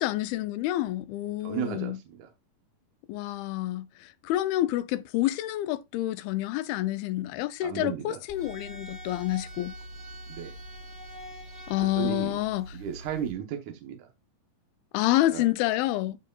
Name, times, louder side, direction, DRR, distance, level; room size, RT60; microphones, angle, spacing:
voice 1, 0.0-2.0 3.1-9.7 11.7-12.7 14.9-16.2, left 15 dB, 90° left, 2.5 m, -28 dB
voice 2, 1.4-2.3 7.6-8.2 10.3-10.5 11.8-12.4 12.7-14.1 15.3-15.5, right 9 dB, 70° right, 2.1 m, -34 dB
sound 1, 8.3-13.3, equal, 20° right, 1.9 m, -43 dB
13.5 x 4.8 x 2.3 m
omnidirectional pair, 4.2 m